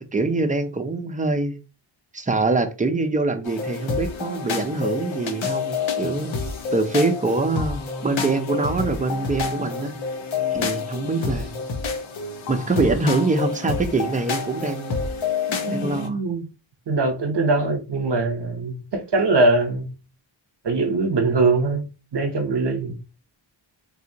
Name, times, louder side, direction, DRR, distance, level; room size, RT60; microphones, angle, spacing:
voice 1, 0.0-1.6 2.1-6.3 6.7-9.9 10.5-11.5 12.5-15.0 15.7-16.2, right 3 dB, 15° right, 0.5 m, -24 dB
sound 1, 3.5-16.1, left 4 dB, 75° left, 0.8 m, -28 dB
voice 2, 15.6-16.5 16.9-19.9 20.6-21.9 22.1-23.0, right 3 dB, 60° right, 0.9 m, -22 dB
3.5 x 2.8 x 2.8 m
wide cardioid pair, 70°, 47 cm